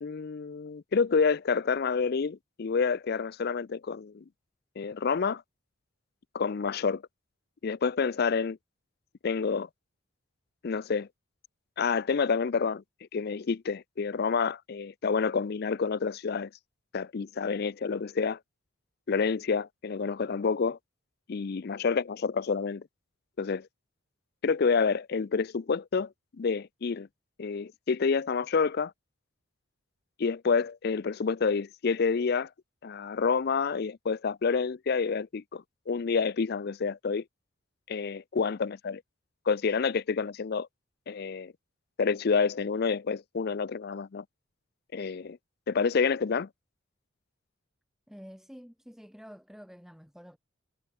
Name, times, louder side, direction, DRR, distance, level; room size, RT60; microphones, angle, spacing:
voice 1, 0.0-4.2 4.8-5.4 6.3-7.0 7.6-8.6 9.2-9.7 10.6-11.1 11.8-12.8 13.1-16.5 16.9-18.4 19.1-20.8 21.3-22.8 23.4-23.7 24.4-26.1 26.4-27.1 27.4-28.9 30.2-32.5 32.8-37.2 37.9-39.0 39.5-40.7 41.1-41.5 42.0-44.2 44.9-45.4 45.7-46.5, left 5 dB, 50° left, 0.4 m, -28 dB
voice 2, 48.1-50.4, equal, ahead, 5.2 m, -49 dB
head